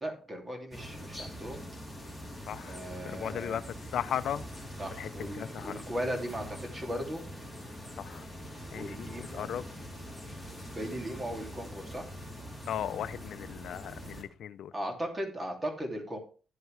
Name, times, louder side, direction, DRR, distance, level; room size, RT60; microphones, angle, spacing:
voice 1, 0.0-1.6 2.6-3.6 4.8-7.2 8.8-9.5 10.2-12.0 14.7-16.2, equal, 25° right, 2.7 m, -37 dB
sound 1, 0.7-14.2, equal, 5° right, 3.6 m, -44 dB
voice 2, 2.5-2.8 3.1-3.6 3.9-4.4 5.0-5.8 8.0-8.3 8.7-9.7 12.7-14.7, left 10 dB, 70° left, 0.5 m, -36 dB
10.5 x 7.8 x 3.3 m
cardioid pair, 90°, 0 cm